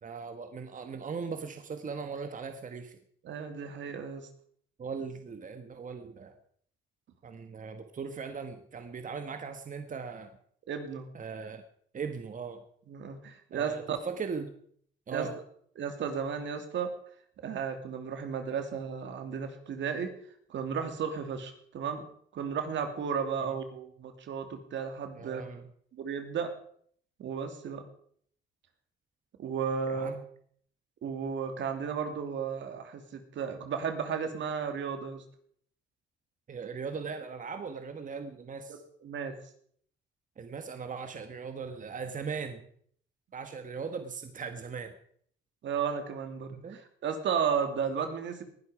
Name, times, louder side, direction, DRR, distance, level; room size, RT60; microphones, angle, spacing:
voice 1, 0.0-3.0 4.8-6.4 7.2-10.4 11.1-11.6 11.9-12.6 13.5-14.5 15.1-15.4 23.5-23.6 25.2-25.7 29.9-30.2 36.5-38.8 40.4-42.7 43.3-44.9 46.5-46.8, right 5 dB, 40° right, 7 dB, 1.5 m, -39 dB
voice 2, 3.2-4.3 10.7-11.1 12.9-14.0 15.1-15.3 15.8-16.9 17.4-20.1 20.5-22.0 22.3-25.4 25.9-26.5 27.2-27.8 29.4-30.1 31.0-35.2 38.7-39.3 45.6-48.4, right 6 dB, 70° right, 7 dB, 2.6 m, -34 dB
19.5 x 11.0 x 4.9 m, 0.62 s
cardioid pair, 90°, 20 cm